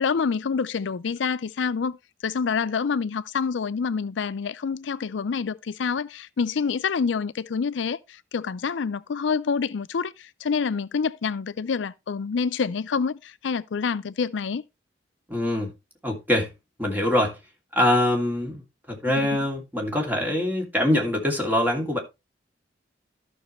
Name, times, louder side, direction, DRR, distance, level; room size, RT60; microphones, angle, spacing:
voice 1, 0.0-2.0 2.2-14.6, left 5 dB, 80° left, 0.4 m, -27 dB
voice 2, 15.3-15.7 16.0-16.5 16.8-17.4 17.7-18.6 18.9-22.0, left 1 dB, 10° right, 2.6 m, -24 dB
13.5 x 6.0 x 3.1 m
head